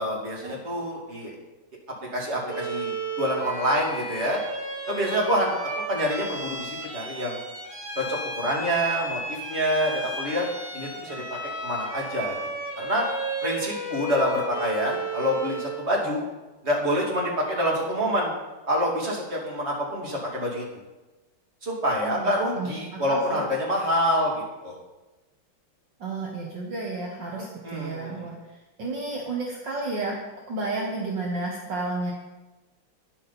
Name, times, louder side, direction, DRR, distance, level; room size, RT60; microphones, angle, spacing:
voice 1, 0.0-1.3 2.1-4.4 4.9-7.4 7.9-10.5 10.7-11.2 11.6-12.4 12.8-13.0 13.4-16.2 16.6-18.3 18.7-20.6 21.6-24.8 27.4-28.3, equal, 30° right, -3 dB, 3.0 m, -27 dB
Bowed string instrument, 2.5-15.8, right 2 dB, 80° right, 5.5 m, -33 dB
voice 2, 22.5-23.4 26.0-28.3 28.8-30.1 30.5-32.1, right 3 dB, 60° right, -2 dB, 2.0 m, -31 dB
12.5 x 11.0 x 4.2 m, 1.1 s
omnidirectional pair, 2.2 m